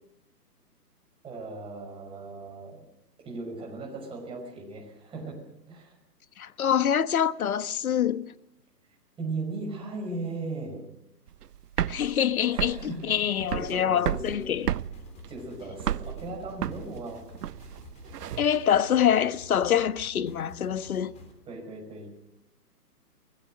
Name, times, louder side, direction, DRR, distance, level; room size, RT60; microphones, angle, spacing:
voice 1, 1.2-2.8 3.2-5.4 5.7-6.0 9.2-10.9 12.5-14.8 15.3-17.3 21.5-22.1, right 3 dB, 10° right, 5.9 m, -38 dB
voice 2, 6.4-8.3 11.9-14.7 18.4-21.1, left 9 dB, 60° left, 1.3 m, -25 dB
sound 1, 11.3-18.6, right 10 dB, 75° right, 0.7 m, -32 dB
sound 2, 14.3-21.3, left 3 dB, 15° left, 3.7 m, -50 dB
24.5 x 19.5 x 6.3 m
hypercardioid pair, 150°, 48 cm